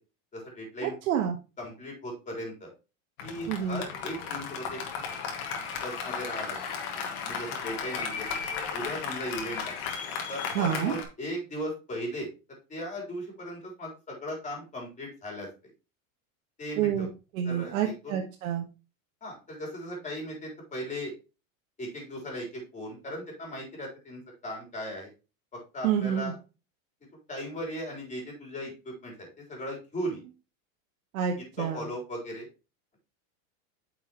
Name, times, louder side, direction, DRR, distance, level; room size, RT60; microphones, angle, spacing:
voice 1, 0.3-0.9 1.6-2.7 3.2-4.8 5.8-6.6 7.2-8.3 8.7-9.7 10.3-12.3 12.7-15.7 16.6-17.1 17.4-18.2 19.2-21.1 21.8-25.1 25.5-26.4 27.3-30.2 31.6-32.5, equal, 20° left, -1 dB, 3.9 m, -37 dB
voice 2, 1.1-1.4 3.5-3.8 10.5-11.0 16.8-17.1 17.4-18.6 25.8-26.3 31.1-31.9, right 9 dB, 80° right, 2 dB, 1.3 m, -28 dB
Applause, 3.2-11.0, left 6 dB, 55° left, 2.2 m, -35 dB
9.2 x 5.7 x 3.0 m, 0.30 s
supercardioid pair, 135°, 41 cm